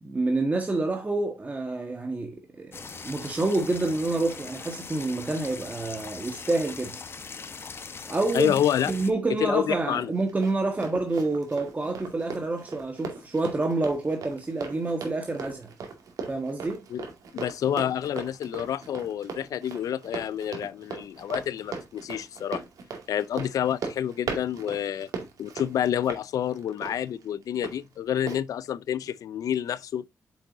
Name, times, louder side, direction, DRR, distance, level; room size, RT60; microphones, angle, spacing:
voice 1, 0.0-7.0 8.1-15.7 16.3-16.8, right 2 dB, 25° right, 1.4 m, -28 dB
sound 1, 2.7-9.1, left 5 dB, 40° left, 1.0 m, -40 dB
voice 2, 8.3-8.9 9.4-10.1 16.9-17.1 17.3-22.6 23.1-25.1 25.4-30.0, left 10 dB, 80° left, 0.4 m, -28 dB
Run, 9.9-27.7 28.3-28.4, right 5 dB, 75° right, 2.2 m, -39 dB
8.2 x 6.4 x 2.6 m
cardioid pair, 90°, 6 cm